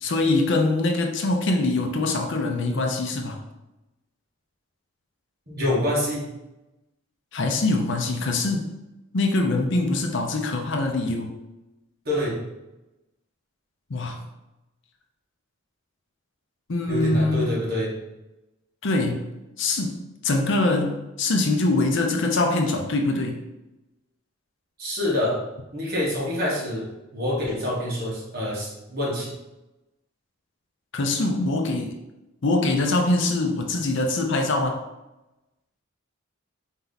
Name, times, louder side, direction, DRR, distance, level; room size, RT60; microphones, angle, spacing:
voice 1, 0.0-3.4 7.3-8.7 9.1-11.3 13.9-14.2 16.7-17.6 18.8-19.3 19.6-23.4 30.9-32.0 32.4-34.8, left 2 dB, 60° left, 4 dB, 0.6 m, -23 dB
voice 2, 5.5-6.3 12.0-12.4 16.9-17.9 24.8-25.4 25.7-29.3, left 1 dB, 50° right, -5 dB, 1.5 m, -26 dB
4.5 x 2.8 x 3.9 m, 0.99 s
head